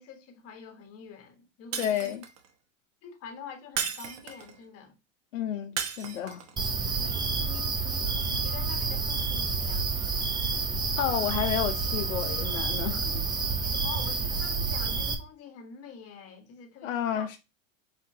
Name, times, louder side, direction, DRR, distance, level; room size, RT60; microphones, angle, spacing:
voice 1, 0.0-2.2 3.0-4.9 6.9-9.9 13.0-13.2 13.6-17.3, left 6 dB, 35° left, 1.3 m, -46 dB
Shatter, 1.7-2.5 3.8-4.6 5.8-6.5, right 7 dB, 40° right, 0.9 m, -34 dB
voice 2, 1.8-2.2 5.3-6.5 11.0-13.1 16.8-17.4, left 10 dB, 70° left, 0.7 m, -31 dB
sound 1, 6.6-15.1, right 4 dB, 10° right, 0.4 m, -29 dB
4.4 x 3.6 x 2.7 m
hypercardioid pair, 100°, 39 cm